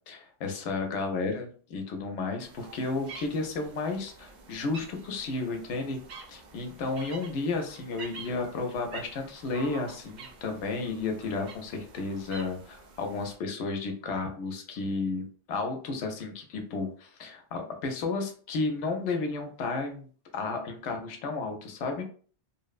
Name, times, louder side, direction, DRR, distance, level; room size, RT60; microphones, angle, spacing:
voice 1, 0.0-6.0 6.3-20.1 20.3-22.0, left 3 dB, 85° left, 4 dB, 0.9 m, -32 dB
sound 1, 2.4-13.3, right 4 dB, 55° right, 0.5 m, -48 dB
2.8 x 2.1 x 2.3 m, 0.43 s
omnidirectional pair, 1.2 m